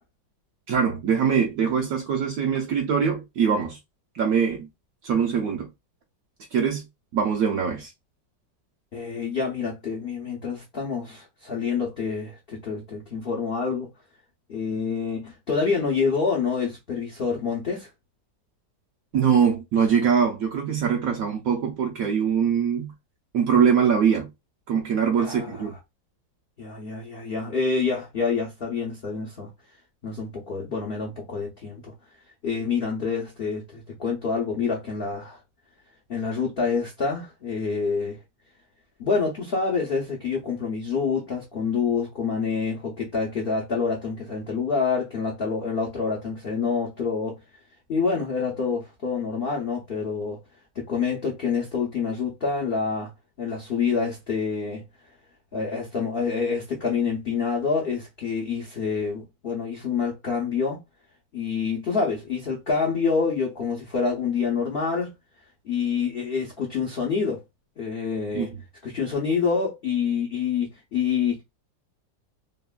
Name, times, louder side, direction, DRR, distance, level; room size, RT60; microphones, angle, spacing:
voice 1, 0.7-3.8 4.1-4.7 5.0-5.7 6.5-6.9 7.1-7.9 19.1-22.9 23.3-24.3 24.7-25.7 68.3-68.5, right 7 dB, 70° right, 0.8 m, -22 dB
voice 2, 8.9-13.9 14.5-17.9 25.2-25.7 26.6-29.5 30.0-31.9 32.4-35.4 36.1-38.2 39.0-47.4 47.9-50.4 50.7-53.1 53.4-54.8 55.5-60.8 61.3-65.1 65.6-67.4 67.8-68.5 68.8-71.4, left 5 dB, 75° left, 0.5 m, -27 dB
3.1 x 2.1 x 2.3 m
omnidirectional pair, 1.9 m